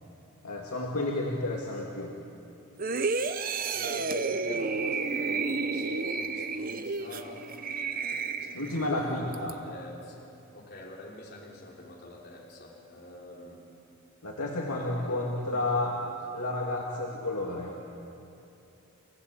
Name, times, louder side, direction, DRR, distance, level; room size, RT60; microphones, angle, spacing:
voice 1, 0.4-2.1 8.5-9.5 14.2-15.9 16.3-17.8, left 2 dB, 90° left, -2 dB, 2.4 m, -31 dB
sound 1, 2.8-8.9 9.3-9.5, right 4 dB, 40° right, 0.8 m, -31 dB
voice 2, 3.7-7.4 8.0-10.3 10.5-13.6 14.7-16.2, left 1 dB, 45° left, -3 dB, 3.3 m, -46 dB
29.5 x 15.5 x 8.5 m, 2.8 s
head